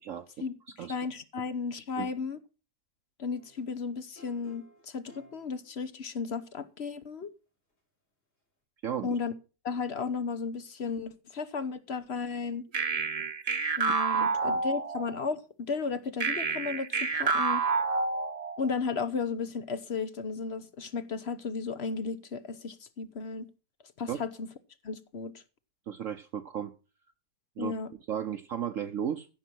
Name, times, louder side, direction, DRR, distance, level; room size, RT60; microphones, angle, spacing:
voice 1, 0.4-2.4 3.2-7.3 9.0-9.3 9.6-12.6 13.8-17.6 18.6-23.5 24.0-24.5 24.8-25.4 27.6-27.9, left 5 dB, 50° left, 1.0 m, -34 dB
sound 1, 3.3-6.2 7.7-7.8, equal, 85° left, 5.4 m, -58 dB
voice 2, 8.8-9.2 14.1-14.3 24.1-24.2 25.9-26.7 27.6-27.7 28.1-29.3, right 9 dB, 60° right, 1.1 m, -34 dB
sound 2, 12.7-15.3 16.2-18.7, right 4 dB, 40° right, 0.5 m, -29 dB
15.0 x 7.1 x 6.1 m
omnidirectional pair, 1.7 m